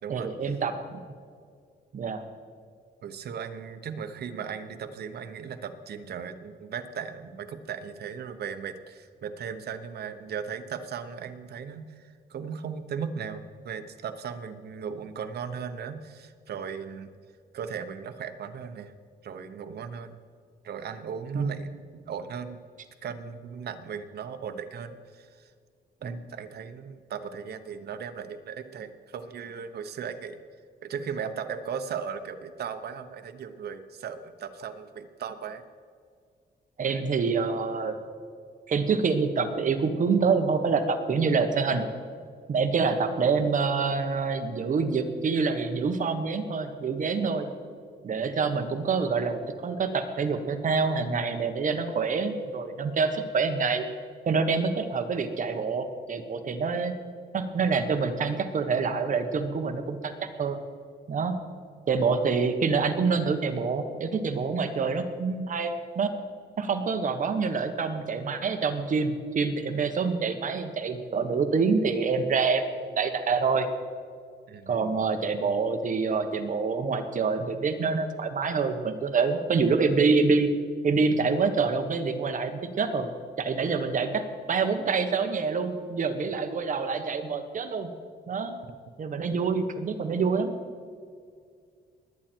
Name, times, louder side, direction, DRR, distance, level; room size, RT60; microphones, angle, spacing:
voice 1, 0.1-1.0 1.9-2.2 21.3-21.5 26.0-26.2 36.8-38.0 38.7-41.8 42.5-47.5 48.0-53.8 54.3-56.9 57.3-60.6 61.1-61.3 61.9-66.1 66.6-73.7 74.7-80.5 80.8-83.1 83.4-87.9 88.3-88.6 89.0-90.5, right 4 dB, 45° right, 6 dB, 1.3 m, -26 dB
voice 2, 3.0-17.1 17.5-18.9 19.2-20.2 20.6-22.6 23.0-25.5 26.0-30.4 30.8-35.6 42.8-43.2 74.5-74.9, right 7 dB, 65° right, 8 dB, 1.0 m, -37 dB
20.5 x 9.0 x 4.5 m, 2.1 s
cardioid pair, 125°, 18 cm